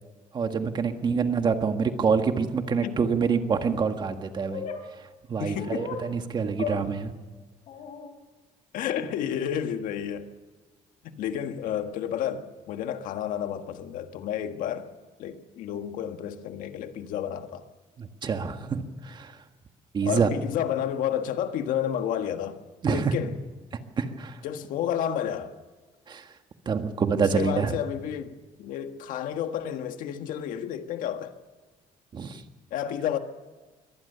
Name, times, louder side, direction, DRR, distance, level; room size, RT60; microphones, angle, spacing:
voice 1, 0.3-4.7 5.3-7.1 18.0-19.4 19.9-20.3 22.8-23.1 24.0-24.4 26.1-26.3 26.6-27.8 32.1-32.4, right 5 dB, 35° right, 1.7 m, -26 dB
sound 1, 4.5-4.8 5.5-6.0 6.6-6.8 7.7-8.1, left 6 dB, 65° left, 3.7 m, -34 dB
voice 2, 5.4-5.8 8.7-10.3 11.0-14.9 15.2-17.6 20.0-23.3 24.4-25.5 27.2-31.3 32.7-33.2, left 9 dB, 85° left, 1.6 m, -31 dB
23.5 x 18.5 x 6.9 m
cardioid pair, 155°, 13 cm